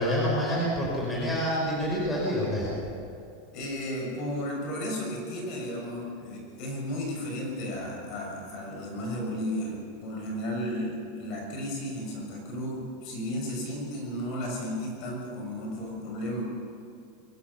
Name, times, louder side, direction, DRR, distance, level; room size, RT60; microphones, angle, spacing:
voice 1, 0.0-2.7, equal, 10° left, -4 dB, 5.3 m, -27 dB
voice 2, 3.5-16.4, equal, 40° left, 0 dB, 6.6 m, -34 dB
22.5 x 16.0 x 7.1 m, 2.5 s
supercardioid pair, 160°, 0 cm